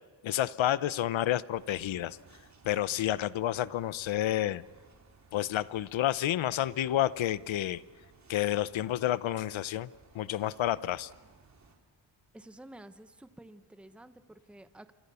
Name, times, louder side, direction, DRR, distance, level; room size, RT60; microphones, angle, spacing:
voice 1, 0.2-2.2 2.6-4.6 5.3-7.8 8.3-9.9 10.1-11.1, left 12 dB, 75° left, 17 dB, 0.9 m, -30 dB
sound 1, 1.5-11.8, right 4 dB, 35° right, 4.0 m, -60 dB
voice 2, 12.3-14.9, right 1 dB, ahead, 10 dB, 1.0 m, -51 dB
28.0 x 26.5 x 7.0 m, 1.4 s
wide cardioid pair, 145°, 47 cm